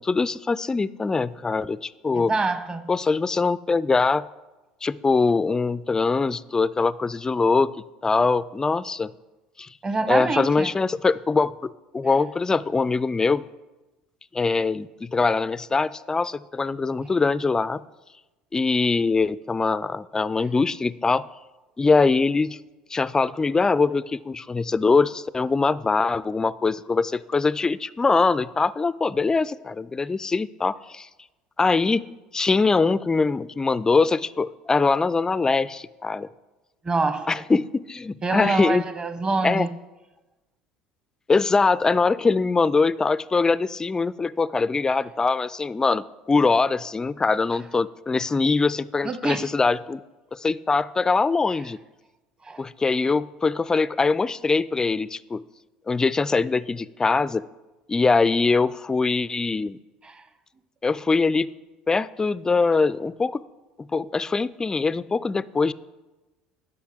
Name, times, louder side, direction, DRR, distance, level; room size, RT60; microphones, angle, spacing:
voice 1, 0.0-2.3 2.9-4.2 4.8-7.7 8.0-9.1 9.6-9.7 10.1-13.4 14.3-17.8 18.5-21.3 21.8-22.6 22.9-31.1 31.6-32.0 32.3-36.3 37.3-38.8 39.4-39.7 41.3-50.0 50.3-51.8 52.6-55.4 55.9-57.4 57.9-59.8 60.8-61.5 61.9-63.4 63.8-65.7, left 4 dB, 15° left, 0.3 m, -22 dB
voice 2, 2.1-2.9 9.8-10.7 36.8-37.4 38.2-39.7 49.0-49.5 52.4-52.7 60.0-60.2, right 3 dB, 25° right, 1.0 m, -26 dB
11.5 x 5.7 x 6.4 m
figure-of-eight pair, 65°, 4 cm